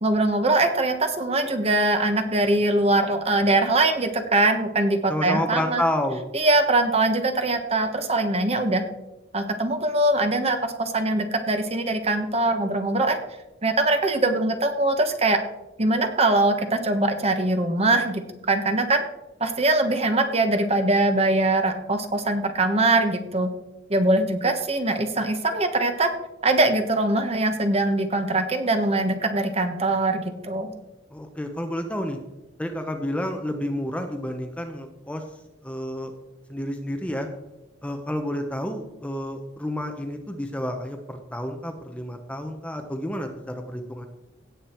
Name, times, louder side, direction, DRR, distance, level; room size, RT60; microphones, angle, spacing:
voice 1, 0.0-5.8 6.3-8.8 9.3-13.2 13.6-15.4 15.8-18.2 18.5-19.0 19.4-23.5 23.9-26.1 26.4-30.7, right 2 dB, 30° right, 7 dB, 1.3 m, -22 dB
voice 2, 5.1-6.2 31.1-32.2 32.6-35.2 35.6-36.1 36.5-37.3 37.8-44.1, left 1 dB, 5° left, 5 dB, 0.9 m, -30 dB
17.0 x 7.3 x 4.5 m, 0.96 s
head